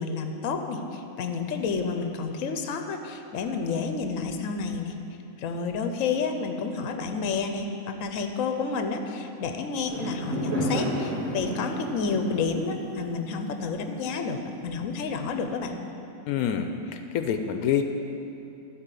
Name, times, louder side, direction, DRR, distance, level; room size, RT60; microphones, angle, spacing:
voice 1, 0.0-4.9 5.4-15.7, left 4 dB, 65° left, 6 dB, 1.1 m, -30 dB
Fireworks, 9.8-14.3, equal, 70° right, 2.2 m, -32 dB
voice 2, 16.3-16.7 17.1-17.9, left 8 dB, 90° left, 7 dB, 1.1 m, -25 dB
12.5 x 4.5 x 8.3 m, 2.7 s
omnidirectional pair, 1.5 m